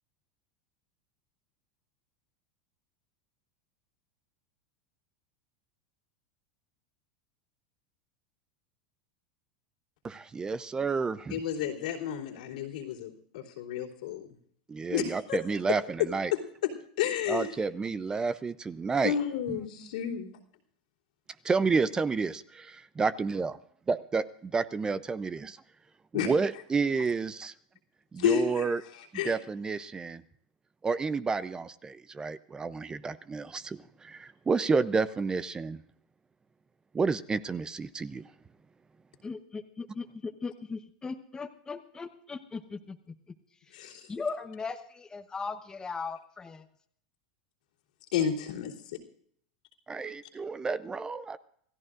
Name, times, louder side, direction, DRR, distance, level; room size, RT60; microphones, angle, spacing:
voice 1, 10.0-11.4 14.7-16.3 17.3-19.2 21.4-23.5 23.9-24.2 24.5-25.6 26.1-27.5 28.1-28.8 29.1-30.2 30.8-35.8 36.9-38.3 49.9-51.4, right 4 dB, 20° right, 15 dB, 0.6 m, -30 dB
voice 2, 11.3-14.3 14.9-15.4 16.3-16.7 17.0-17.5 19.0-20.3 26.1-26.3 28.2-28.7 29.1-29.4 43.7-44.0 48.1-48.7, left 9 dB, 80° left, -3 dB, 3.2 m, -31 dB
voice 3, 39.2-43.0 44.1-46.7, left 4 dB, 15° left, 6 dB, 1.0 m, -38 dB
27.5 x 15.0 x 2.5 m, 0.65 s
supercardioid pair, 115°, 4 cm